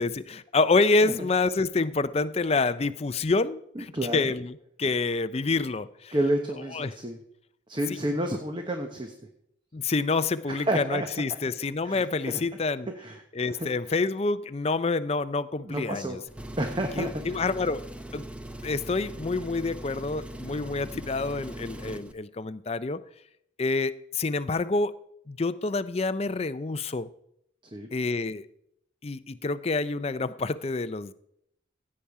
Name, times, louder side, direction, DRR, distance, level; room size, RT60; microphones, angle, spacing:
voice 1, 0.0-6.1 6.7-6.9 9.7-12.9 13.4-16.2 17.0-17.8 18.1-18.3 18.6-23.0 23.6-25.0 25.3-27.1 27.9-28.5 29.0-31.1, left 3 dB, 35° left, 14 dB, 0.5 m, -27 dB
voice 2, 3.8-4.3 6.1-7.2 7.7-9.1 10.5-11.1 11.8-12.4 13.0-13.2 13.5-13.9 15.6-16.2 16.6-17.4 27.7-27.9, right 1 dB, 25° right, 5 dB, 1.0 m, -30 dB
Engine, 16.3-22.1, right 1 dB, 5° right, 0.6 m, -40 dB
16.0 x 8.6 x 4.8 m, 0.75 s
head